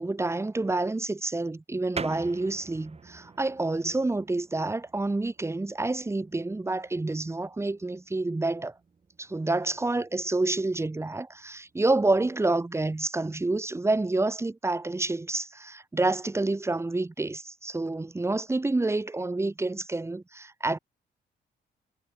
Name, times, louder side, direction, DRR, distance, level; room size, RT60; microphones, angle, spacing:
voice 1, 0.0-8.7 9.2-20.8, right 2 dB, 15° right, 1.7 m, -28 dB
sound 1, 1.9-12.1, right 5 dB, 35° right, 7.4 m, -46 dB
cardioid pair, 135°, 19 cm